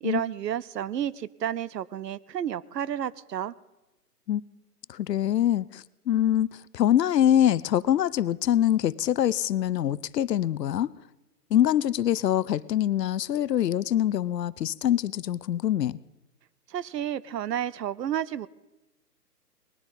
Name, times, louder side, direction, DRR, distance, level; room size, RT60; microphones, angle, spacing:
voice 1, 0.0-3.5 16.7-18.5, right 10 dB, 85° right, 20 dB, 0.7 m, -31 dB
voice 2, 4.9-10.9 11.5-16.0, left 11 dB, 80° left, 20 dB, 0.6 m, -24 dB
19.5 x 13.5 x 4.1 m, 1.0 s
hypercardioid pair, 155°, 48 cm